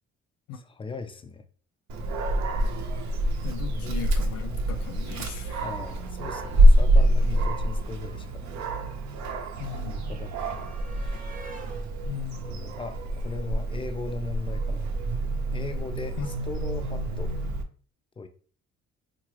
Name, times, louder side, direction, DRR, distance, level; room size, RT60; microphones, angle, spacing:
voice 1, 0.5-1.4 3.7-4.8 5.6-8.5 9.7-11.2 12.4-14.9 15.5-17.3 18.2-18.3, left 4 dB, 20° left, 0.3 m, -39 dB
Dog, 1.9-17.6, right 1 dB, 65° right, 0.6 m, -26 dB
voice 2, 3.4-5.7 9.6-10.2 12.0-12.7 16.1-16.3, left 8 dB, 85° left, 0.5 m, -37 dB
sound 1, 8.2-13.7 14.9-15.1 15.3-15.5, right 2 dB, 30° right, 0.7 m, -50 dB
3.7 x 2.5 x 3.1 m
cardioid pair, 90°, 30 cm